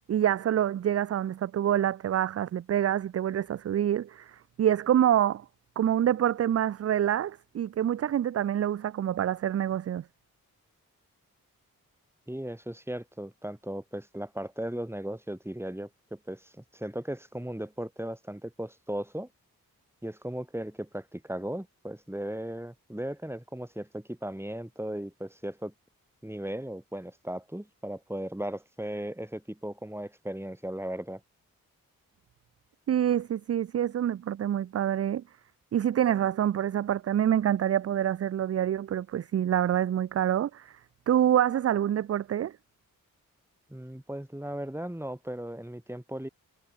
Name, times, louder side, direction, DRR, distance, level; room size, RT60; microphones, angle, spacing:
voice 1, 0.1-5.4 5.8-10.0 32.9-35.2 35.7-40.8 41.1-42.5, right 10 dB, 45° right, 0.4 m, -26 dB
voice 2, 12.3-19.3 20.0-25.7 26.2-31.2 43.7-46.3, right 1 dB, 5° right, 3.8 m, -37 dB
supercardioid pair, 45°, 36 cm